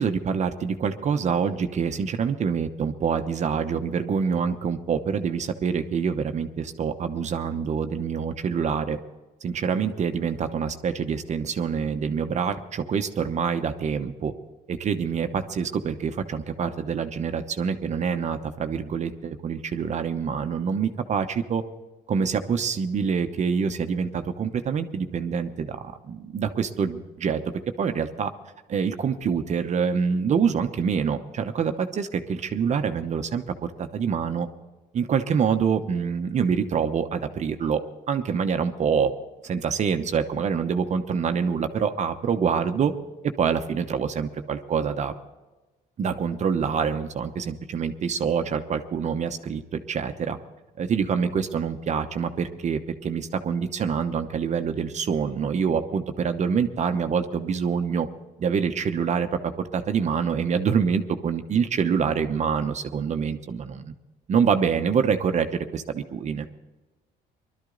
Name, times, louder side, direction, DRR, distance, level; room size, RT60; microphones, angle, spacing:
voice 1, 0.0-9.0 9.4-14.3 14.7-21.6 22.1-27.4 27.8-28.3 28.7-33.4 33.8-34.5 34.9-37.8 38.1-39.1 39.4-42.9 43.4-45.1 46.0-50.4 50.8-58.1 58.4-63.9 64.3-66.5, right 6 dB, 45° right, 7 dB, 0.9 m, -26 dB
20.0 x 12.5 x 3.9 m, 1.1 s
cardioid pair, 110°, 17 cm